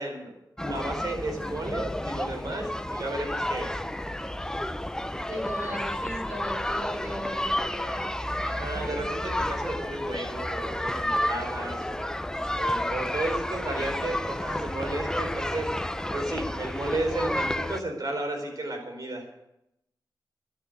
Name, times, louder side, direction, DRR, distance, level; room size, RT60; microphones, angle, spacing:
voice 1, 0.0-3.7 8.4-12.1 12.6-15.8 16.1-19.2, right 2 dB, 55° right, 2 dB, 4.7 m, -33 dB
sound 1, 0.6-17.8, left 1 dB, 10° left, 0.7 m, -31 dB
voice 2, 5.3-9.0, equal, 30° right, -2 dB, 4.5 m, -38 dB
11.5 x 11.5 x 8.3 m, 0.85 s
wide cardioid pair, 95°, 8 cm